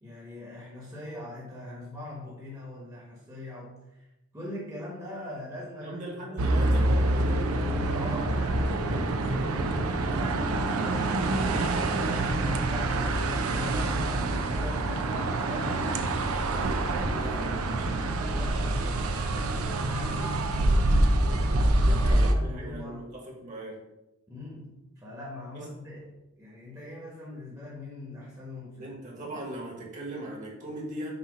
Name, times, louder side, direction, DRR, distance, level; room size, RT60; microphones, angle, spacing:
voice 1, 0.0-6.5 7.8-11.2 11.5-16.1 16.8-20.4 21.8-23.1 24.3-29.2, left 2 dB, 15° right, -5 dB, 1.2 m, -42 dB
voice 2, 5.8-7.5 17.1-17.6 21.8-23.8 25.5-25.7 28.8-31.1, right 1 dB, 35° right, -2 dB, 1.5 m, -39 dB
sound 1, 6.4-22.3, right 2 dB, 85° right, 0.6 m, -26 dB
6.6 x 2.9 x 5.1 m, 0.91 s
head